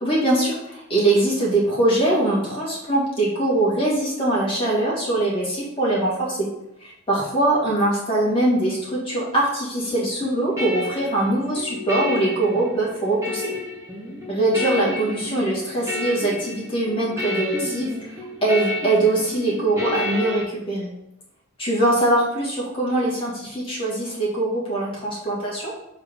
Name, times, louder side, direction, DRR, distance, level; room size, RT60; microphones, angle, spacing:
voice 1, 0.0-6.5 6.8-13.5 14.3-18.1 18.4-20.9 21.6-25.7, right 2 dB, 25° left, -6 dB, 2.1 m, -22 dB
sound 1, 9.9-20.4, left 2 dB, 15° right, 2.2 m, -30 dB
6.6 x 4.6 x 3.8 m, 0.85 s
head